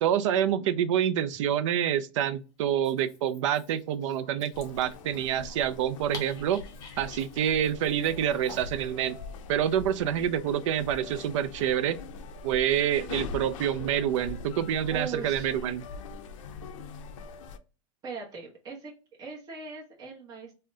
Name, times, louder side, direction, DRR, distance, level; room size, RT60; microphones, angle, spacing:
voice 1, 0.0-6.6 7.0-9.2 9.5-12.0 12.4-15.9, right 10 dB, 65° right, 0.4 m, -27 dB
Dog, 2.7-8.9, left 4 dB, 20° left, 1.0 m, -49 dB
sound 1, 4.5-17.6, left 4 dB, 70° left, 0.5 m, -42 dB
voice 2, 14.9-15.5 18.0-18.9 19.2-20.5, right 4 dB, 25° right, 0.9 m, -39 dB
3.6 x 2.1 x 2.6 m
supercardioid pair, 150°, 17 cm